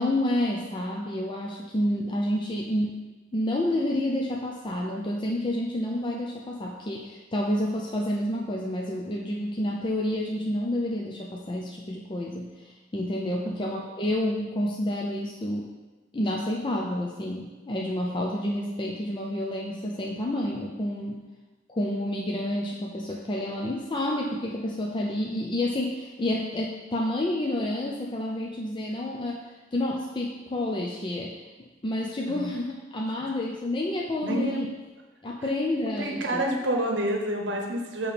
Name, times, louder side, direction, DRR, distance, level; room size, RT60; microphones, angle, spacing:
voice 1, 0.0-2.9 3.3-15.7 16.1-21.2 21.7-29.4 29.7-31.4 31.8-34.7 35.2-36.4, left 1 dB, 25° left, -1 dB, 0.4 m, -29 dB
voice 2, 34.2-34.6 36.0-38.1, right 1 dB, 70° right, 2 dB, 0.8 m, -28 dB
6.6 x 2.9 x 5.0 m, 1.2 s
head